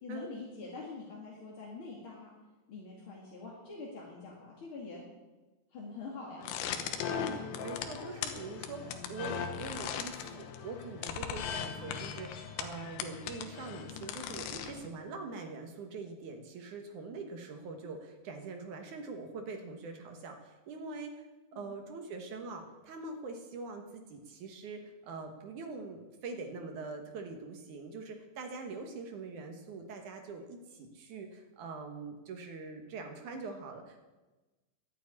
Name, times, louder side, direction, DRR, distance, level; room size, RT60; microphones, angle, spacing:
voice 1, 0.0-2.3 2.7-5.0 5.7-6.5 21.5-21.8, left 4 dB, 40° left, -4 dB, 2.2 m, -45 dB
sound 1, 6.4-14.9, left 8 dB, 80° left, 3.3 m, -39 dB
voice 2, 7.1-21.1 21.5-34.0, right 3 dB, 65° right, 4 dB, 2.1 m, -43 dB
12.0 x 9.3 x 9.5 m, 1.1 s
omnidirectional pair, 5.2 m